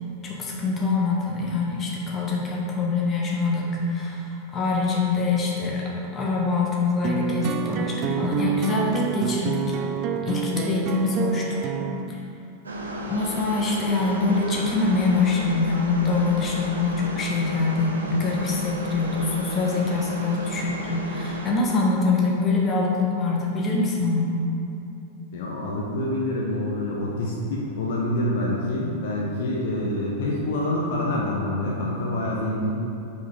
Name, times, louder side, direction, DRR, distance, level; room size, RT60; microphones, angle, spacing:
voice 1, 0.2-9.8 10.2-11.7 13.1-24.3, left 3 dB, 25° left, -3 dB, 1.2 m, -24 dB
sound 1, 7.0-12.1, right 7 dB, 40° right, 0.3 m, -28 dB
sound 2, 12.6-21.5, equal, 75° right, 0.7 m, -33 dB
voice 2, 25.3-32.7, left 1 dB, 55° left, -3 dB, 0.8 m, -26 dB
5.3 x 4.7 x 4.8 m, 2.8 s
figure-of-eight pair, 90°, 0 cm